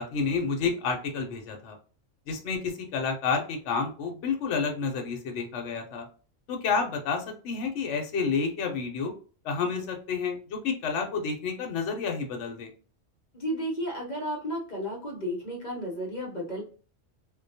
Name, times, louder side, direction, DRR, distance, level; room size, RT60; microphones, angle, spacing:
voice 1, 0.0-1.8 2.3-6.1 6.5-9.1 9.4-12.7, left 5 dB, 70° left, 3 dB, 0.9 m, -30 dB
voice 2, 13.3-16.6, equal, 45° left, -1 dB, 0.7 m, -33 dB
2.3 x 2.2 x 2.6 m, 0.38 s
omnidirectional pair, 1.3 m